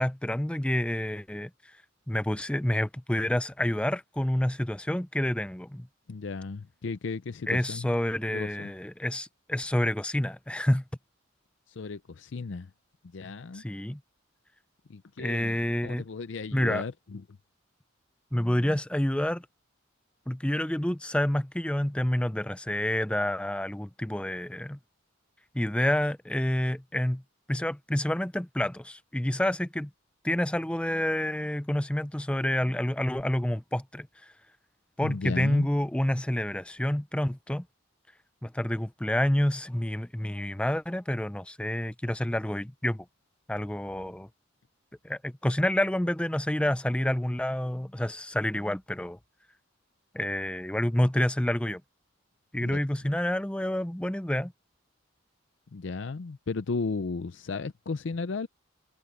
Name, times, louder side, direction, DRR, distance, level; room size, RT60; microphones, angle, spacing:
voice 1, 0.0-1.7 2.1-5.9 7.5-10.8 13.5-14.0 15.2-16.1 16.5-16.8 18.3-19.5 20.3-24.8 25.5-27.2 27.5-29.9 30.2-34.3 35.0-37.7 38.4-43.1 43.5-44.3 45.0-49.2 50.1-51.8 52.5-54.5, left 1 dB, 5° left, 0.5 m, -28 dB
voice 2, 6.1-7.9 8.3-8.7 11.7-12.7 13.1-13.6 14.9-15.6 15.8-17.2 35.0-35.7 52.6-52.8 55.7-58.5, left 4 dB, 65° left, 0.5 m, -35 dB
head